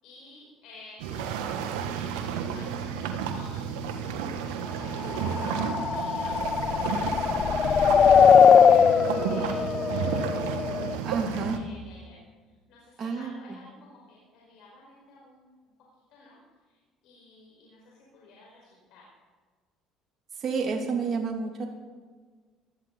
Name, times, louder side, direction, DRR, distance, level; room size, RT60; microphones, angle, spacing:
voice 1, 0.0-15.7 16.1-19.1, left 2 dB, 70° left, -4 dB, 5.0 m, -53 dB
sound 1, 1.0-11.6, right 8 dB, 90° right, 1.5 m, -32 dB
sound 2, 5.1-10.9, left 7 dB, 40° left, 0.5 m, -21 dB
voice 2, 11.0-11.6 13.0-13.6 20.3-21.7, right 5 dB, 45° right, 1 dB, 2.9 m, -30 dB
19.0 x 13.5 x 4.1 m, 1.5 s
supercardioid pair, 85°, 0 cm